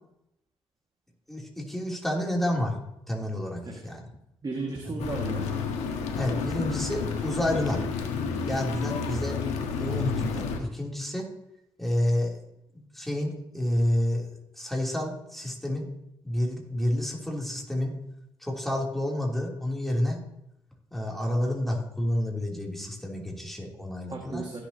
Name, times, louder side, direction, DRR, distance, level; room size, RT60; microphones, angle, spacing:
voice 1, 1.3-2.7 3.1-4.0 6.2-7.9 8.4-9.3 9.6-11.3 11.8-12.4 12.7-14.3 14.6-15.9 16.2-17.9 18.4-20.2 20.9-24.5, left 1 dB, ahead, -2 dB, 3.1 m, -29 dB
voice 2, 4.4-5.7 24.1-24.6, right 3 dB, 40° right, -1 dB, 1.9 m, -35 dB
sound 1, 5.0-10.6, left 5 dB, 85° left, 1.3 m, -30 dB
16.5 x 7.0 x 2.9 m, 0.82 s
supercardioid pair, 50°, 11 cm